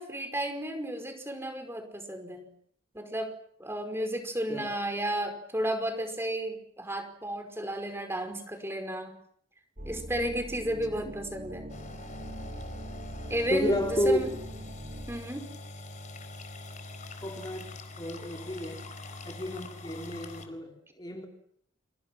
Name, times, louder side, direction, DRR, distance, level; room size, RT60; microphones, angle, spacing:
voice 1, 0.0-2.5 2.9-9.1 9.8-11.7 13.3-14.3 15.1-15.5, right 1 dB, 10° right, 5.0 m, -33 dB
sound 1, 9.8-15.1, equal, 40° right, 5.9 m, -42 dB
sound 2, 11.7-20.5, left 2 dB, 40° left, 4.3 m, -44 dB
voice 2, 13.5-14.2 17.2-18.8 19.2-21.3, equal, 20° left, 4.0 m, -31 dB
29.5 x 29.0 x 6.2 m
head